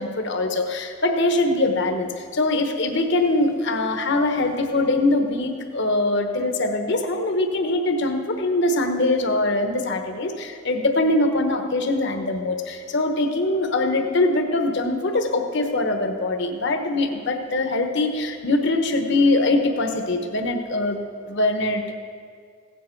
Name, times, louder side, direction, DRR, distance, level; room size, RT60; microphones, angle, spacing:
voice 1, 0.0-21.0 21.3-21.9, left 2 dB, 60° left, 5 dB, 1.1 m, -22 dB
15.5 x 9.3 x 4.5 m, 2.1 s
head